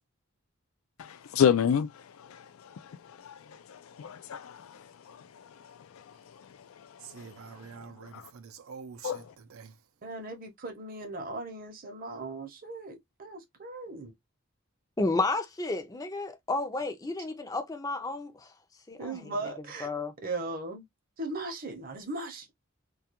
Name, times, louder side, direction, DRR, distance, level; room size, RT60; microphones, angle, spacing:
voice 1, 1.0-1.9 2.3-2.4 3.2-3.3 3.7-4.8 5.1-5.2 8.1-8.2 9.0-9.2, left 8 dB, 80° left, 0.4 m, -27 dB
voice 2, 7.0-9.8, right 6 dB, 85° right, 0.5 m, -46 dB
voice 3, 10.0-14.1 19.0-19.9 20.2-20.8 21.2-22.5, right 2 dB, 40° right, 0.7 m, -38 dB
voice 4, 15.0-18.5 18.9-20.1, left 2 dB, 15° left, 0.4 m, -32 dB
2.3 x 2.2 x 2.8 m
head